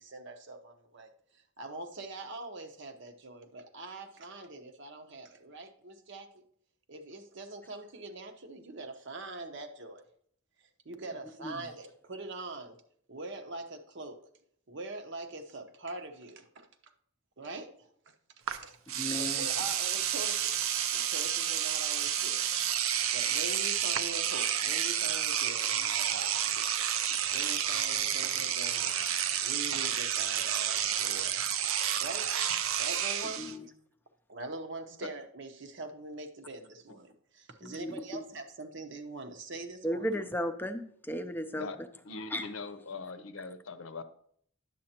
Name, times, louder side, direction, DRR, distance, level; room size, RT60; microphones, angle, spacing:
voice 1, 0.0-6.4 6.9-10.0 10.8-12.8 13.1-14.2 14.7-16.9 17.4-18.1 18.5-18.8 19.1-20.7 20.9-22.5 23.1-29.1 29.4-31.5 32.0-32.3 32.8-33.7 34.3-40.1, right 2 dB, 60° right, 6 dB, 0.9 m, -43 dB
Engine / Domestic sounds home sounds, 18.5-18.6 18.9-33.5, right 9 dB, 85° right, 0.5 m, -30 dB
voice 2, 19.0-19.5 33.4-33.6 37.6-38.2 39.8-41.7 42.3-42.4, equal, 10° left, 8 dB, 0.6 m, -35 dB
voice 3, 42.0-44.0, left 4 dB, 80° left, 10 dB, 0.7 m, -41 dB
10.0 x 7.6 x 2.9 m, 0.64 s
head